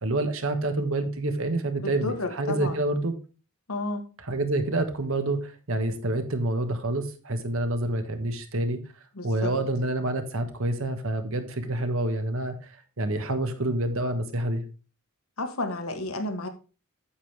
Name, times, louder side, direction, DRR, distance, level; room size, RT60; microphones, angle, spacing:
voice 1, 0.0-3.1 4.2-8.8 9.2-14.6, right 2 dB, 65° right, 1.3 m, -28 dB
voice 2, 1.8-2.8 3.7-4.1 9.1-9.5 15.4-16.5, left 2 dB, 75° left, 1.4 m, -31 dB
8.6 x 7.4 x 3.3 m
head